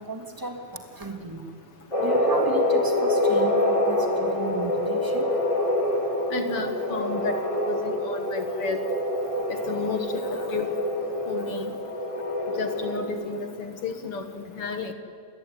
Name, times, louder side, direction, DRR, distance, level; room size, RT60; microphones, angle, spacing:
voice 1, 0.1-1.4 2.0-5.3, right 1 dB, 5° right, 4 dB, 2.5 m, -34 dB
rev spaceship drone full wet resample, 1.9-13.0, left 1 dB, 10° left, 3.9 m, -26 dB
voice 2, 6.3-8.8 9.5-10.7 11.3-11.7 12.6-14.9, left 5 dB, 55° left, 8 dB, 2.1 m, -32 dB
28.0 x 21.0 x 9.9 m, 2.5 s
omnidirectional pair, 3.4 m